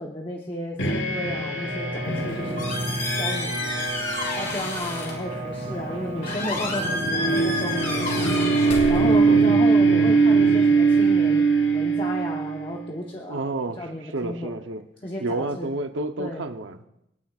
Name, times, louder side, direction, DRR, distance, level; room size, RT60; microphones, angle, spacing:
voice 1, 0.0-2.7 3.2-3.9 4.4-14.5 15.0-15.7 16.2-16.4, left 1 dB, 25° left, -1 dB, 0.9 m, -33 dB
sound 1, 0.8-12.8, right 4 dB, 80° left, 1.4 m, -22 dB
Bowed string instrument, 1.5-9.8, right 3 dB, 35° right, 1.5 m, -35 dB
Squeak, 2.1-9.5, left 2 dB, 40° left, 2.9 m, -31 dB
voice 2, 9.0-9.4 13.3-13.9 14.1-14.8 15.2-16.8, right 2 dB, 85° right, 8 dB, 0.8 m, -30 dB
27.0 x 9.4 x 2.4 m, 0.81 s
head